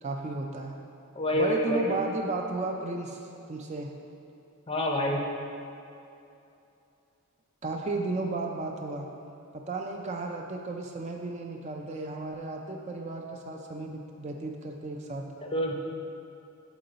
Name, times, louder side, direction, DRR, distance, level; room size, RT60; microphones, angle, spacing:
voice 1, 0.0-0.7 1.3-3.2 3.5-3.9 7.6-9.1 9.5-15.2, right 2 dB, 30° right, 2 dB, 0.3 m, -34 dB
voice 2, 1.2-2.0 4.7-5.2 15.4-15.7, left 1 dB, 25° left, 0 dB, 0.5 m, -27 dB
8.0 x 3.8 x 3.9 m, 2.7 s
head